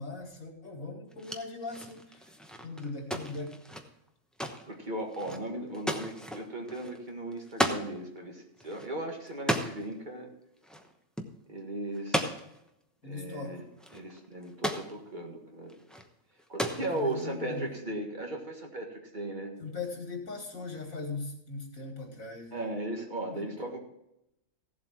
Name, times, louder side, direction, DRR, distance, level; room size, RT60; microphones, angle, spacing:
voice 1, 0.0-2.3 2.6-3.6 5.3-5.4 13.0-13.7 16.8-17.6 19.6-22.7 23.3-23.5, left 3 dB, 90° left, 2 dB, 2.8 m, -39 dB
sound 1, 1.1-7.9 8.2-8.3 8.6-9.9 10.6-10.9 11.2-11.3 11.9-12.7 13.4-13.5 13.8-14.9 15.7-16.1 16.4-17.2, equal, ahead, 0.8 m, -35 dB
voice 2, 4.6-10.3 11.5-12.3 13.0-13.6 13.9-15.8 16.5-19.5 22.5-23.8, right 1 dB, 35° right, 1 dB, 2.0 m, -37 dB
16.0 x 7.8 x 4.5 m, 0.83 s
omnidirectional pair, 1.4 m